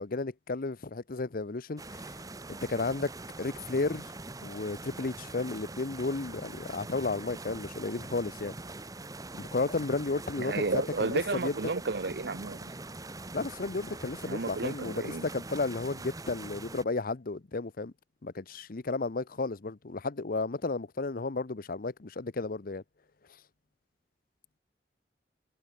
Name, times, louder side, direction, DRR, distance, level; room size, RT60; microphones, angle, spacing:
voice 1, 0.0-2.1 2.5-3.1 3.4-4.1 4.4-8.5 9.3-11.5 13.3-17.9 18.2-22.8, left 3 dB, 55° left, 0.8 m, -33 dB
sound 1, 1.8-16.8, right 2 dB, 20° right, 1.1 m, -43 dB
voice 2, 10.4-12.7 14.2-15.2, right 3 dB, 70° right, 0.9 m, -32 dB
head